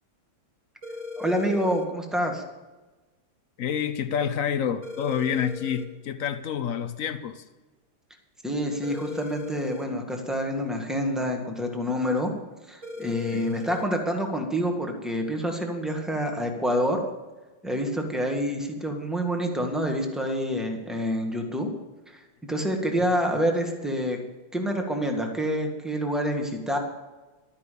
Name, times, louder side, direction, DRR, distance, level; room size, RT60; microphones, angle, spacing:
sound 1, 0.8-1.9 4.8-5.9 8.8-9.9 12.8-13.9, left 4 dB, 15° right, 1.7 m, -38 dB
voice 1, 1.2-2.4 8.4-12.3 12.7-17.0 17.6-21.7 22.1-24.2 24.5-26.8, equal, ahead, 2 dB, 1.7 m, -27 dB
voice 2, 3.6-7.4 13.3-13.6 23.1-23.4, left 8 dB, 55° left, 11 dB, 0.9 m, -28 dB
12.5 x 10.0 x 6.9 m, 1.2 s
omnidirectional pair, 2.2 m